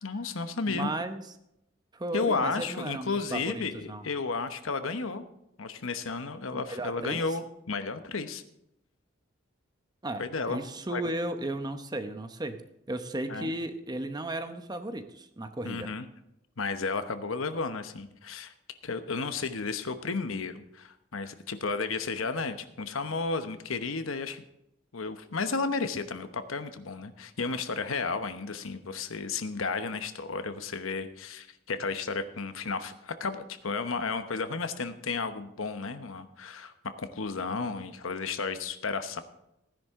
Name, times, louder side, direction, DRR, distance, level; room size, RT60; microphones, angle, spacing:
voice 1, 0.0-0.9 2.1-5.2 5.6-8.4 10.2-10.6 10.9-11.0 13.3-13.5 15.6-16.1 16.6-18.5 18.8-24.4 24.9-39.2, left 4 dB, 90° left, 9 dB, 1.0 m, -33 dB
voice 2, 0.7-1.2 1.9-4.0 6.5-7.2 10.0-10.2 10.5-12.6 12.9-15.9, right 1 dB, 20° right, 8 dB, 0.8 m, -35 dB
15.5 x 10.5 x 3.7 m, 0.84 s
head